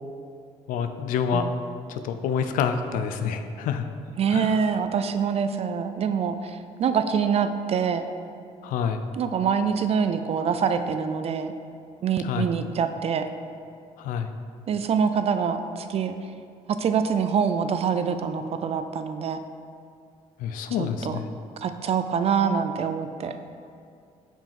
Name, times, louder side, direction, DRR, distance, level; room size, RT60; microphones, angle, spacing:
voice 1, 0.7-1.6 1.9-3.9 4.3-4.6 8.6-9.0 12.2-12.5 14.0-14.3 20.4-21.3, left 7 dB, 70° left, 8 dB, 0.4 m, -27 dB
voice 2, 4.2-8.1 9.1-11.5 12.0-13.3 14.7-16.2 16.7-19.4 20.8-21.2 21.6-23.4, right 6 dB, 45° right, 9 dB, 0.4 m, -25 dB
5.5 x 4.9 x 3.5 m, 2.4 s
supercardioid pair, 65°, 14 cm